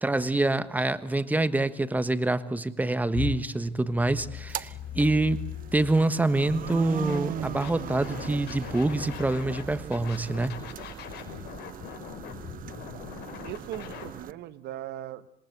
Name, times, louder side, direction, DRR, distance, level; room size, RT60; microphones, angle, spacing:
voice 1, 0.0-5.4 5.7-10.6, right 2 dB, 10° right, 13 dB, 1.3 m, -26 dB
sound 1, 3.1-6.1 6.7-9.9, left 12 dB, 55° left, 0.9 m, -40 dB
sound 2, 4.4-14.3, right 10 dB, 55° right, 0.9 m, -39 dB
Scratching (performance technique), 6.4-6.7 7.1-9.6 9.9-14.1, left 9 dB, 75° left, 5.3 m, -42 dB
voice 2, 13.4-15.3, right 13 dB, 80° right, 14 dB, 1.3 m, -39 dB
27.0 x 21.0 x 8.1 m, 0.75 s
cardioid pair, 110°, 17 cm